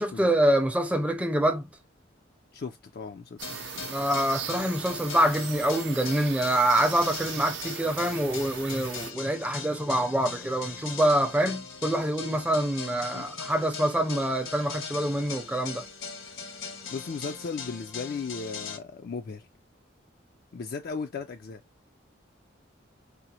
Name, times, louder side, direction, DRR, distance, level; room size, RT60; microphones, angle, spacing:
voice 1, 0.0-1.7 3.9-15.8, right 1 dB, 5° right, 0.6 m, -26 dB
voice 2, 2.5-3.9 13.1-13.3 16.9-19.5 20.5-21.6, left 4 dB, 50° left, 0.4 m, -36 dB
sound 1, 3.4-18.8, left 5 dB, 80° left, 1.2 m, -40 dB
sound 2, 3.4-9.1, right 8 dB, 65° right, 0.6 m, -39 dB
4.9 x 2.0 x 2.8 m
head